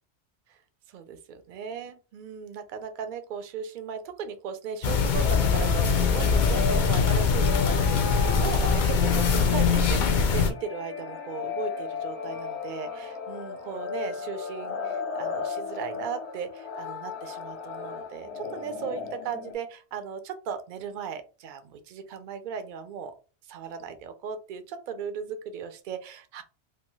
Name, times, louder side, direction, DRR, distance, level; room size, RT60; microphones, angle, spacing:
voice 1, 0.9-23.1 23.5-26.4, right 6 dB, 60° right, 8 dB, 0.5 m, -37 dB
sound 1, 4.8-10.5, left 5 dB, 60° left, 0.5 m, -22 dB
sound 2, 5.2-19.5, left 5 dB, 85° left, 1.2 m, -35 dB
2.8 x 2.2 x 3.0 m, 0.34 s
omnidirectional pair, 1.2 m